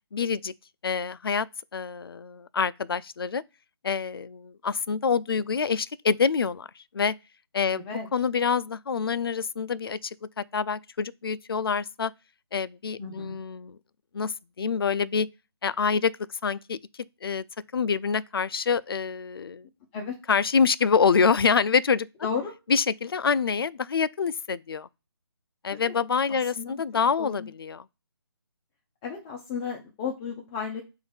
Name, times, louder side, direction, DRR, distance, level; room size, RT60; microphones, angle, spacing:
voice 1, 0.1-0.5 0.8-1.5 1.7-3.4 3.8-7.1 7.5-7.9 8.1-12.1 12.5-13.8 14.1-15.3 15.6-16.1 16.4-16.8 17.2-17.4 17.7-19.7 20.3-22.1 22.7-24.9 25.6-27.8, left 6 dB, 60° left, 0.4 m, -26 dB
voice 2, 7.7-8.1 13.0-13.4 19.9-20.2 22.2-22.5 25.7-25.9 26.3-26.8 27.2-27.5 29.0-30.8, left 6 dB, 15° left, 0.6 m, -34 dB
3.6 x 2.6 x 3.9 m
figure-of-eight pair, 155°, 14 cm